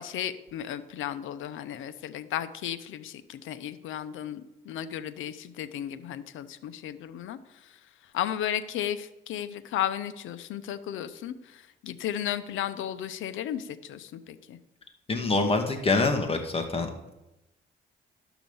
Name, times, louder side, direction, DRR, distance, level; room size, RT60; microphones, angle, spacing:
voice 1, 0.0-7.7 8.1-14.6, left 10 dB, 80° left, 12 dB, 0.8 m, -34 dB
voice 2, 15.1-17.1, left 3 dB, 30° left, 4 dB, 2.0 m, -26 dB
12.0 x 6.0 x 7.1 m, 0.93 s
cardioid pair, 90°, 20 cm